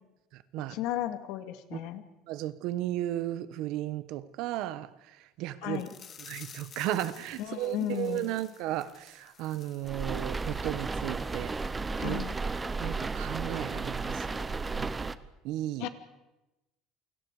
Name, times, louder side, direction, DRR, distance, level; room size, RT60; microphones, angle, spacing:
voice 1, 0.7-2.0 5.6-5.9 7.4-8.3 12.0-12.4 15.8-15.9, left 13 dB, 65° left, 9 dB, 2.3 m, -34 dB
voice 2, 2.3-4.9 5.4-5.9 6.3-11.5 12.0-12.2 12.8-14.9 15.4-15.9, right 14 dB, 60° right, 15 dB, 1.2 m, -34 dB
sound 1, 5.7-10.8 11.1-11.2 11.6-11.7, left 7 dB, 25° left, 1.8 m, -52 dB
sound 2, 9.8-15.2, right 4 dB, 10° right, 0.8 m, -33 dB
29.0 x 24.5 x 4.9 m, 0.98 s
cardioid pair, 175°, 0 cm